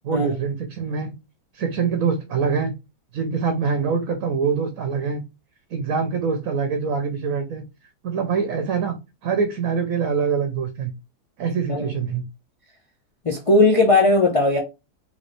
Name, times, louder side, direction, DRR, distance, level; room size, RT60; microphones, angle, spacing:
voice 1, 0.0-1.1 1.5-2.7 3.1-5.2 5.7-7.6 8.0-9.0 9.2-10.9 11.4-12.2, right 5 dB, 60° right, 1.1 m, -24 dB
voice 2, 13.2-14.6, left 2 dB, 40° left, 0.5 m, -17 dB
4.0 x 3.6 x 3.2 m
omnidirectional pair, 1.8 m